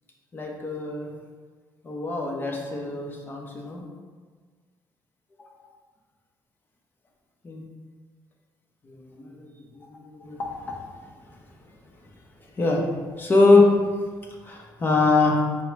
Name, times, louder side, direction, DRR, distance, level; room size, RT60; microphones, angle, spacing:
voice 1, 0.3-1.1 1.8-3.8 5.4-5.5 7.4-7.6 8.9-10.5 12.6-12.8 13.2-13.7 14.4-15.4, left 3 dB, 25° left, 0 dB, 0.7 m, -23 dB
4.5 x 2.1 x 4.5 m, 1.5 s
cardioid pair, 130°, 7 cm